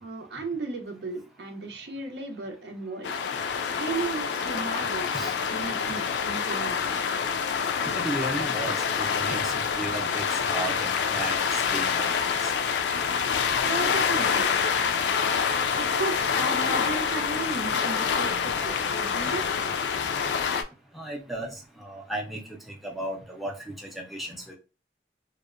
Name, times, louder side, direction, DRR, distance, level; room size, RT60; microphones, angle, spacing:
voice 1, 0.0-3.2 3.7-6.9 13.6-14.5 15.7-19.6, right 3 dB, 80° right, 5 dB, 0.6 m, -35 dB
sound 1, 3.0-20.6, left 6 dB, 80° left, 0.3 m, -26 dB
voice 2, 8.0-12.5 20.9-22.4 22.8-24.6, right 1 dB, ahead, 0 dB, 0.4 m, -35 dB
2.7 x 2.1 x 2.4 m, 0.33 s
head